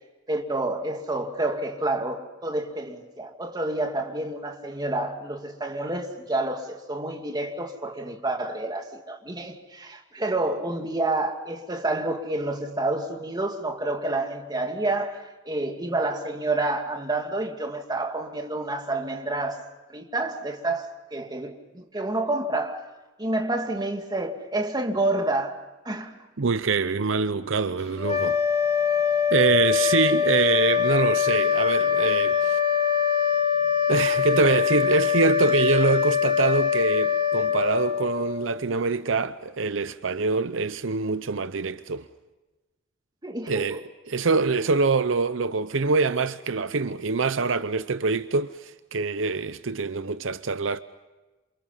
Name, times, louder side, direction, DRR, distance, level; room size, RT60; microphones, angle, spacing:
voice 1, 0.3-19.6 19.9-22.8 23.2-25.6 25.8-26.2 43.2-43.8, right 2 dB, 20° right, 2.4 m, -29 dB
voice 2, 26.4-28.4 29.3-32.6 33.9-42.1 43.5-50.8, right 4 dB, 70° right, 0.7 m, -24 dB
sound 1, 28.0-38.6, left 8 dB, 35° left, 2.9 m, -23 dB
28.0 x 28.0 x 5.7 m
head